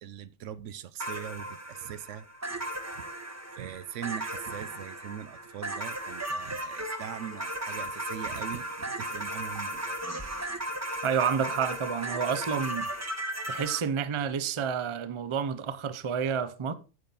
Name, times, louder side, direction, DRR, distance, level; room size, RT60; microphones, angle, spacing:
voice 1, 0.0-2.3 3.0-3.1 3.5-10.2, right 10 dB, 75° right, 0.9 m, -41 dB
sound 1, 1.0-13.8, right 1 dB, 15° right, 0.9 m, -36 dB
voice 2, 11.0-12.9 13.5-16.7, right 7 dB, 35° right, 0.5 m, -29 dB
9.4 x 7.1 x 3.9 m
omnidirectional pair, 1.3 m